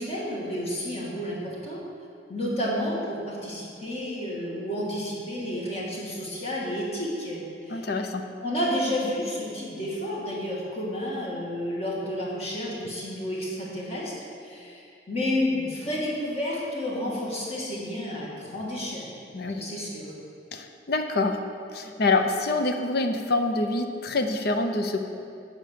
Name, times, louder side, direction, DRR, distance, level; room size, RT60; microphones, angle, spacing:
voice 1, 0.0-1.8 2.3-7.9 8.4-14.1 14.4-19.1 19.5-20.1, left 1 dB, 35° left, -5 dB, 2.1 m, -31 dB
voice 2, 7.7-8.3 19.3-19.6 20.5-21.4 21.7-25.1, left 2 dB, 65° left, 6 dB, 0.7 m, -26 dB
8.9 x 5.3 x 6.9 m, 2.5 s
head